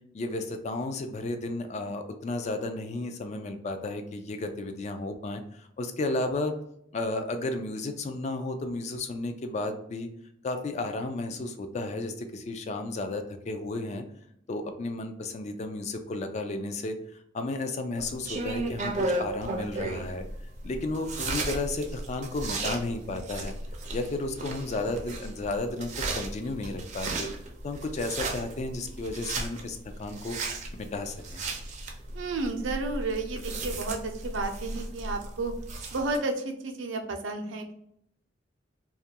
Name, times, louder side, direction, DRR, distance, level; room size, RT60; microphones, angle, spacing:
voice 1, 0.1-6.5 6.9-10.1 10.4-14.0 14.5-20.2 20.6-23.5 23.9-27.3 27.6-30.4 30.8-31.4, left 2 dB, 35° left, 7 dB, 0.3 m, -33 dB
chewing apple, 18.0-36.2, right 2 dB, 40° right, 0.4 m, -35 dB
voice 2, 32.1-35.5 35.9-37.7, right 3 dB, 90° right, 4 dB, 0.5 m, -32 dB
2.3 x 2.2 x 2.7 m, 0.73 s
head